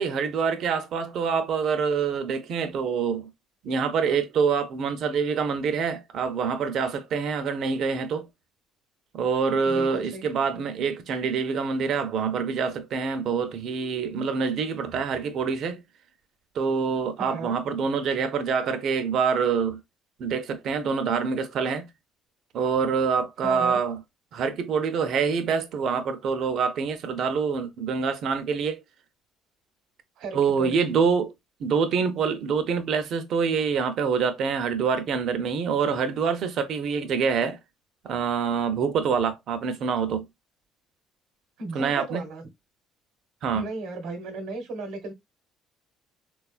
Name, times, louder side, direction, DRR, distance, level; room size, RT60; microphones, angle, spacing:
voice 1, 0.0-3.3 3.6-8.3 9.1-15.8 16.5-19.8 20.2-21.9 22.5-24.0 24.3-28.8 30.3-31.3 31.6-37.6 38.0-40.3 41.7-42.2 43.4-43.7, right 6 dB, 55° right, 0.6 m, -26 dB
voice 2, 9.6-10.2 17.2-17.8 23.4-23.8 30.2-30.8 41.6-42.5 43.5-45.1, right 3 dB, 80° right, 0.9 m, -35 dB
3.6 x 2.3 x 2.4 m
cardioid pair, 130°, 0 cm